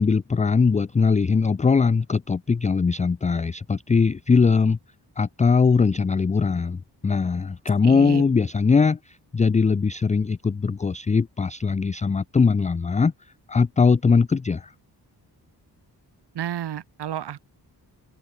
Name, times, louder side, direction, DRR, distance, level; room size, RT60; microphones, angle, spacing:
voice 1, 0.0-4.8 5.2-13.1 13.5-14.7, left 5 dB, 20° left, 0.4 m, -21 dB
voice 2, 7.8-8.2 16.3-17.5, right 10 dB, 80° right, 1.5 m, -31 dB
open air
cardioid pair, 95°, 40 cm